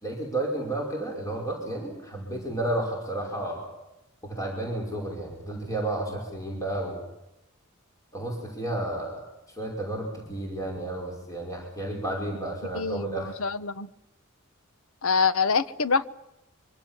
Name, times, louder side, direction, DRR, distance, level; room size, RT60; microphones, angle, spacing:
voice 1, 0.0-3.7 4.2-7.0 8.1-13.3, right 1 dB, 15° left, 0 dB, 5.5 m, -32 dB
voice 2, 12.7-13.9 15.0-16.1, left 5 dB, 80° left, 14 dB, 1.1 m, -25 dB
25.0 x 25.0 x 7.4 m, 0.92 s
head